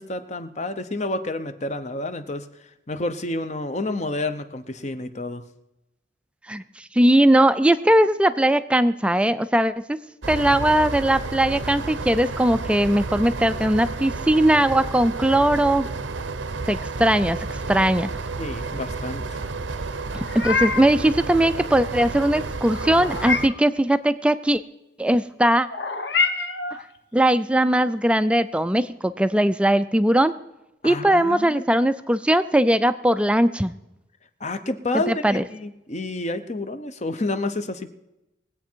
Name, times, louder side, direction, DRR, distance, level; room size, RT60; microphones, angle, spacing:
voice 1, 0.0-2.5 2.9-5.4 18.4-19.5 30.8-31.6 34.4-37.9, left 2 dB, 35° left, 10 dB, 0.8 m, -29 dB
voice 2, 6.5-10.0 10.3-15.9 16.7-18.1 20.3-24.6 25.0-25.7 27.1-30.3 30.8-33.7 35.1-35.4, right 1 dB, 5° right, 12 dB, 0.4 m, -20 dB
sound 1, 10.2-23.5, right 3 dB, 80° right, 0.8 m, -31 dB
Meow, 20.1-21.0 22.7-23.7 25.7-26.8, left 4 dB, 60° left, 1.0 m, -26 dB
21.0 x 8.4 x 4.5 m, 0.92 s
head